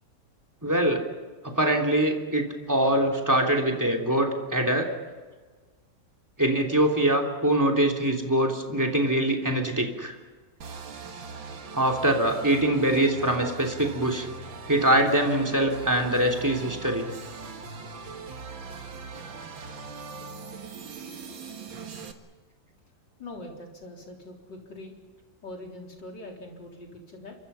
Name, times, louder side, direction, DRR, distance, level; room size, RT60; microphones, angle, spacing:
voice 1, 0.6-1.0 1.4-4.9 6.4-10.1 11.7-14.3 14.7-17.1, right 1 dB, 10° right, 1 dB, 3.0 m, -23 dB
sound 1, 10.6-22.1, right 4 dB, 85° right, 2.5 m, -40 dB
voice 2, 23.2-24.9 25.4-27.4, left 1 dB, 65° left, 0 dB, 4.6 m, -42 dB
28.0 x 24.0 x 5.7 m, 1.4 s
omnidirectional pair, 2.1 m